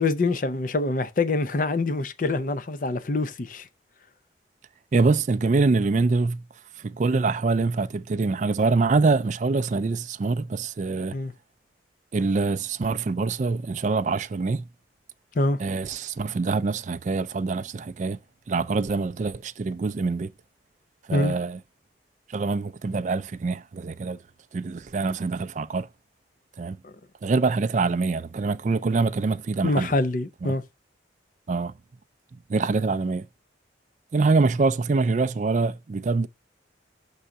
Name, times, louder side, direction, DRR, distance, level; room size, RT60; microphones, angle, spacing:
voice 1, 0.0-3.7 11.1-11.3 15.3-15.6 21.1-21.3 26.8-26.9 29.6-30.6, left 2 dB, 45° left, 0.5 m, -25 dB
voice 2, 4.9-6.4 6.8-11.1 12.1-14.7 15.6-18.2 18.5-20.3 21.1-21.6 22.3-24.2 24.5-25.9 26.6-26.8 27.2-29.9 30.4-30.5 31.5-31.7 32.5-33.3 34.1-36.3, right 3 dB, 40° right, 0.3 m, -24 dB
5.5 x 3.8 x 5.8 m
head